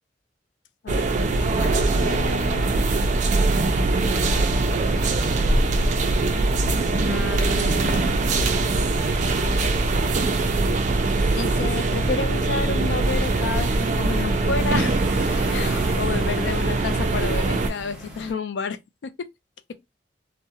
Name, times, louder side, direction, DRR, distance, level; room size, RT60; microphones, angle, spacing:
voice 1, 0.8-2.7 7.0-8.1 11.3-15.0 15.5-19.3, left 5 dB, 70° left, 0.3 m, -31 dB
sound 1, 0.9-17.7, right 2 dB, 45° right, 0.4 m, -22 dB
sound 2, 12.8-18.3, equal, 5° right, 0.9 m, -37 dB
2.3 x 2.1 x 2.7 m
head